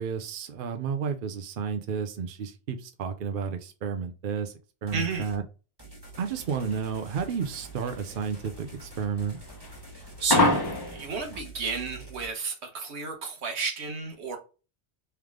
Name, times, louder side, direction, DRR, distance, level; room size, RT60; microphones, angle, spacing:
voice 1, 0.0-4.5 4.8-5.4 6.2-9.4, right 6 dB, 60° right, 0.7 m, -32 dB
sound 1, 4.9-5.4 5.8-12.3, right 2 dB, 20° right, 1.6 m, -47 dB
voice 2, 4.9-5.3 10.2-10.5 10.9-14.4, right 4 dB, 80° right, 1.2 m, -32 dB
sound 2, 6.4-11.4, left 2 dB, 25° left, 0.7 m, -27 dB
3.5 x 3.2 x 3.5 m
omnidirectional pair, 1.1 m